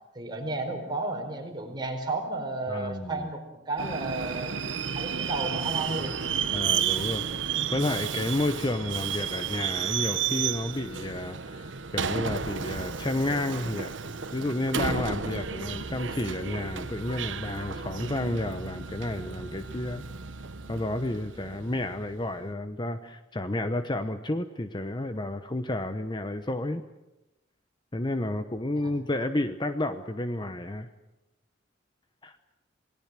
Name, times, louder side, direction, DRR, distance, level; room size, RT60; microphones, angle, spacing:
voice 1, 0.1-4.6 4.9-6.5 28.8-28.9, right 2 dB, 25° right, 3 dB, 4.5 m, -33 dB
voice 2, 2.7-3.3 6.5-7.4 7.7-13.9 14.3-20.0 20.7-26.8 27.9-30.9 32.2-32.4, left 1 dB, 25° left, 9 dB, 0.9 m, -31 dB
Subway metro underground, 3.8-22.2, right 7 dB, 75° right, 1.1 m, -32 dB
28.0 x 18.5 x 7.6 m, 0.98 s
head